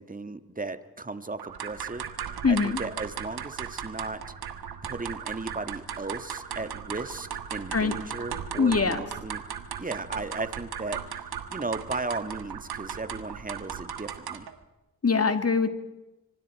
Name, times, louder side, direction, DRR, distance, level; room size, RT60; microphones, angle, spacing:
voice 1, 0.0-2.1 2.5-4.2 4.8-9.4 9.8-14.5, right 3 dB, 20° right, 10 dB, 1.7 m, -36 dB
sound 1, 1.4-14.6, right 8 dB, 80° right, 1.5 m, -37 dB
voice 2, 2.4-2.8 7.7-8.0 8.6-9.0 15.0-15.7, left 5 dB, 40° left, 8 dB, 2.2 m, -23 dB
25.0 x 24.5 x 4.7 m, 1.0 s
supercardioid pair, 45°, 37 cm